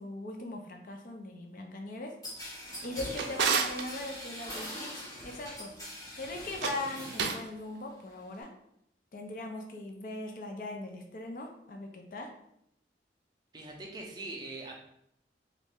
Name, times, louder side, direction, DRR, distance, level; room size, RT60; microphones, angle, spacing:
voice 1, 0.0-2.1 2.8-5.7 6.1-8.5 9.1-12.3, left 2 dB, 50° left, 2 dB, 0.5 m, -40 dB
sound 1, 2.2-7.4 7.8-8.4, equal, 20° left, 0.9 m, -43 dB
Drawer open or close, 2.7-3.9 6.5-7.5, right 6 dB, 90° right, 0.4 m, -32 dB
voice 2, 13.5-14.7, right 2 dB, 25° right, -1 dB, 0.6 m, -42 dB
3.1 x 2.5 x 3.5 m, 0.73 s
head